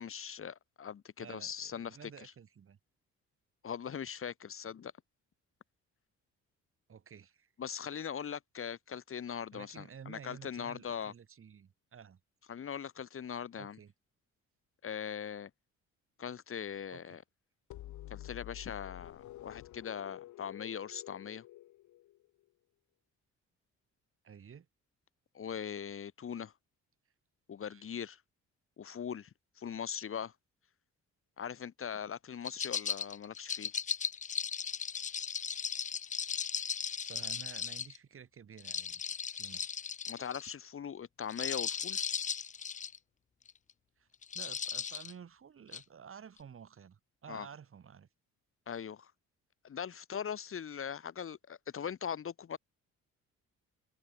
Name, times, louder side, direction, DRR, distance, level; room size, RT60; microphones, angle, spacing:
voice 1, 0.0-2.3 3.6-4.9 7.6-11.1 12.5-13.8 14.8-15.5 16.2-17.2 18.1-21.4 25.3-26.5 27.5-28.2 28.8-29.3 29.6-30.3 31.4-33.7 40.1-42.0 47.3-47.5 48.7-49.1 49.6-52.6, left 8 dB, 45° left, 1.4 m, -41 dB
voice 2, 1.2-2.8 6.9-7.5 9.5-12.2 13.6-13.9 16.9-17.2 24.2-24.7 27.7-27.8 37.0-39.0 39.3-39.8 44.0-44.1 44.3-48.1, right 7 dB, 45° right, 2.4 m, -52 dB
sound 1, 17.7-22.4, left 15 dB, 75° left, 0.8 m, -49 dB
sound 2, 32.4-38.0 38.6-40.5 41.2-43.0 43.5-43.7 44.2-45.1 45.7-45.8, left 7 dB, 25° left, 0.4 m, -37 dB
cardioid pair, 90°, 30 cm